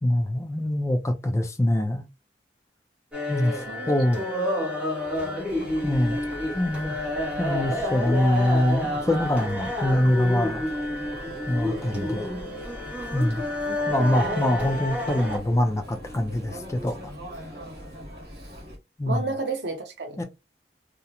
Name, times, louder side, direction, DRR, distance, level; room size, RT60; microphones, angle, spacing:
voice 1, 0.0-2.0 3.3-4.2 5.8-6.2 6.5-7.0 7.4-10.6 11.5-12.3 13.1-13.4 13.9-17.1 19.0-19.3 20.2-20.3, left 1 dB, 15° left, 0.3 m, -24 dB
sound 1, 3.1-15.4, left 1 dB, 5° right, 0.8 m, -29 dB
voice 2, 3.7-4.5 5.2-5.8 11.6-12.5 13.6-14.4 19.0-20.2, right 3 dB, 85° right, 0.8 m, -34 dB
Chatter, 5.5-18.8, equal, 60° right, 1.0 m, -41 dB
2.4 x 2.0 x 2.8 m
head